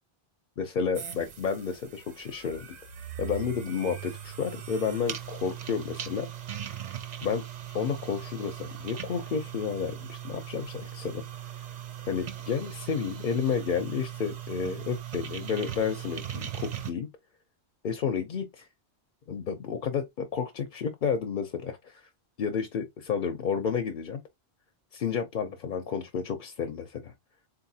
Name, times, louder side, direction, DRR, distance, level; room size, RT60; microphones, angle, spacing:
voice 1, 0.6-2.7 3.2-6.3 7.2-7.4 7.7-11.2 12.1-17.1 17.8-18.6 19.3-22.0 22.4-24.2 24.9-27.1, left 6 dB, 55° left, 0.7 m, -31 dB
sound 1, 0.9-16.9, right 10 dB, 50° right, 0.6 m, -39 dB
3.9 x 2.6 x 2.7 m
omnidirectional pair, 1.1 m